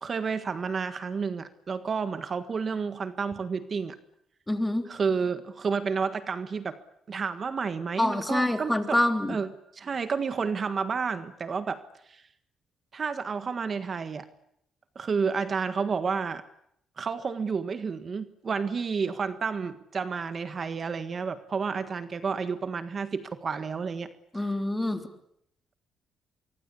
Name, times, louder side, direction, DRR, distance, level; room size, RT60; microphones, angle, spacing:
voice 1, 0.0-3.9 4.9-6.8 7.1-9.0 9.3-11.8 12.1-12.2 12.9-14.3 14.9-16.4 17.0-24.5, right 5 dB, 45° right, 11 dB, 1.6 m, -30 dB
voice 2, 4.5-4.9 8.0-9.4 24.3-25.0, left 1 dB, 10° left, 6 dB, 3.5 m, -26 dB
24.5 x 24.5 x 8.5 m, 0.74 s
cardioid pair, 90°, 0 cm